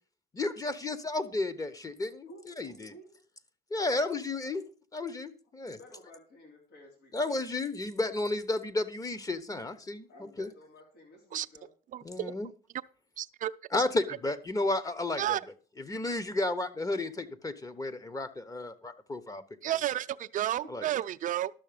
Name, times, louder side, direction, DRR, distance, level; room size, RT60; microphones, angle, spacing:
voice 1, 0.3-2.3 2.6-2.9 3.7-4.6 4.9-5.8 7.1-10.1 10.4-10.5 12.0-12.5 13.7-15.4 15.8-19.4 20.7-20.8, left 2 dB, 20° left, 1.1 m, -32 dB
voice 2, 2.3-3.1 4.3-4.5 5.6-7.4 10.1-11.7 20.2-20.3, equal, 75° left, 3.9 m, -54 dB
voice 3, 13.2-13.5 15.2-15.4 19.6-21.5, right 12 dB, 50° right, 0.5 m, -31 dB
12.0 x 6.8 x 5.1 m
cardioid pair, 110°, 17 cm